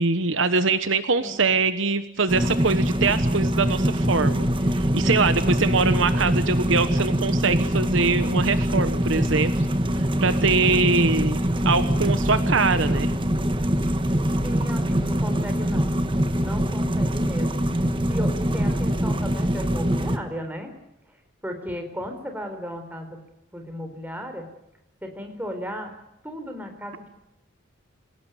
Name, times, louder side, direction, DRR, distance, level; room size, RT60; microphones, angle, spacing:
voice 1, 0.0-9.7 9.9-13.1, right 4 dB, 65° right, 11 dB, 1.2 m, -23 dB
sound 1, 2.3-20.2, equal, 25° right, 1.4 m, -23 dB
voice 2, 14.4-16.0 16.3-20.7 21.4-23.2 23.5-24.5 25.0-25.9 26.2-27.1, equal, 10° right, 5 dB, 4.2 m, -35 dB
27.0 x 17.5 x 9.2 m, 0.85 s
head